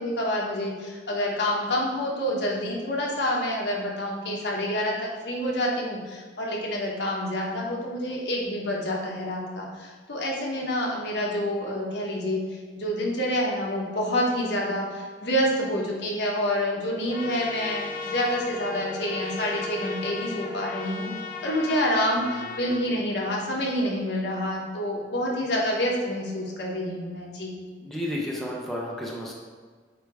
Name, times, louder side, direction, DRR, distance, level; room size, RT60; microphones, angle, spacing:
voice 1, 0.0-12.4 12.8-21.1 21.4-27.6, equal, 70° left, -2 dB, 1.3 m, -28 dB
Wind instrument woodwind instrument, 17.0-21.7, equal, 25° right, 0.7 m, -38 dB
Trumpet, 17.1-22.9, left 5 dB, 50° left, 0.5 m, -37 dB
voice 2, 27.8-29.3, left 1 dB, ahead, -4 dB, 0.9 m, -32 dB
8.3 x 2.9 x 4.8 m, 1.5 s
head